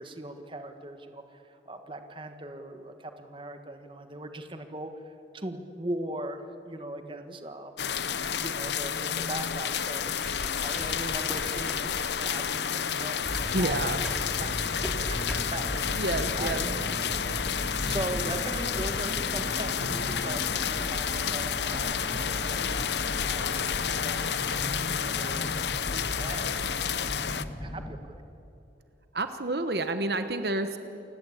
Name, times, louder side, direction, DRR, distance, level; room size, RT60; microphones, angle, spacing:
voice 1, 0.0-7.9 8.4-14.1 14.4-22.9 23.3-24.4 24.9-25.5 25.9-27.2 27.6-28.1, right 1 dB, 30° right, 7 dB, 1.5 m, -40 dB
voice 2, 7.0-7.3 13.5-14.0 15.9-16.7 22.5-22.9 29.1-30.8, right 2 dB, 60° right, 9 dB, 1.2 m, -30 dB
sound 1, 7.8-27.4, left 7 dB, 70° left, 0.8 m, -30 dB
sound 2, 10.0-14.3 14.8-14.9 15.3-15.5, equal, 5° right, 2.8 m, -43 dB
sound 3, 13.2-28.0, equal, 25° left, 2.0 m, -37 dB
29.0 x 17.5 x 8.6 m, 2.8 s
head